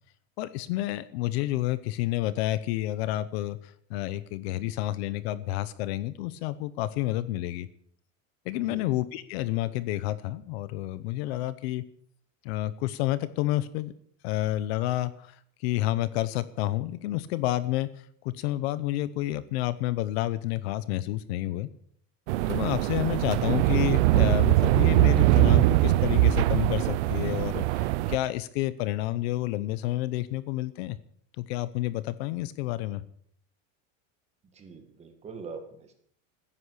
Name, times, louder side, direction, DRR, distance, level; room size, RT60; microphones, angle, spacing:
voice 1, 0.4-7.7 8.5-11.8 12.4-13.9 14.2-17.9 18.2-21.7 22.5-31.0 31.4-33.0, left 15 dB, 50° left, 16 dB, 0.9 m, -30 dB
voice 2, 8.6-8.9 34.5-35.9, right 5 dB, 15° right, 6 dB, 2.0 m, -43 dB
sound 1, 22.3-28.2, right 16 dB, 60° right, 0.7 m, -22 dB
15.5 x 10.5 x 8.1 m, 0.62 s
supercardioid pair, 180°, 39 cm